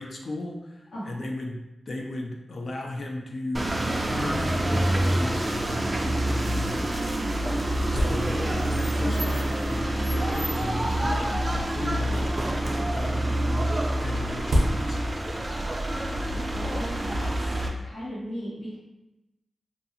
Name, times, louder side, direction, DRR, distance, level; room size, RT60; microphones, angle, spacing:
voice 1, 0.0-1.6 1.9-3.8 4.1-7.1 7.9-12.4 12.9-13.7 14.0-15.2, left 2 dB, 55° left, 1 dB, 0.4 m, -36 dB
voice 2, 0.9-1.2 16.3-18.8, equal, 85° left, -10 dB, 1.3 m, -37 dB
sound 1, 3.5-17.7, right 1 dB, 30° right, 0.3 m, -27 dB
sound 2, 7.7-8.8 9.6-10.0 10.9-12.3 13.5-15.4, equal, 80° right, 0.6 m, -31 dB
2.6 x 2.3 x 2.7 m, 0.95 s
wide cardioid pair, 85°, 0 cm